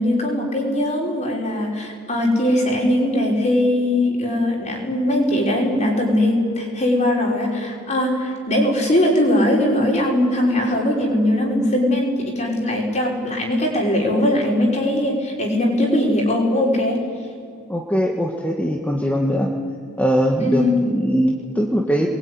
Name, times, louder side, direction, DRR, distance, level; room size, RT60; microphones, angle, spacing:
voice 1, 0.0-17.0 20.4-21.0, left 1 dB, 30° left, 0 dB, 5.5 m, -20 dB
voice 2, 17.7-19.5 20.0-22.1, equal, 5° left, 0 dB, 1.7 m, -21 dB
28.0 x 21.5 x 9.8 m, 2.4 s
head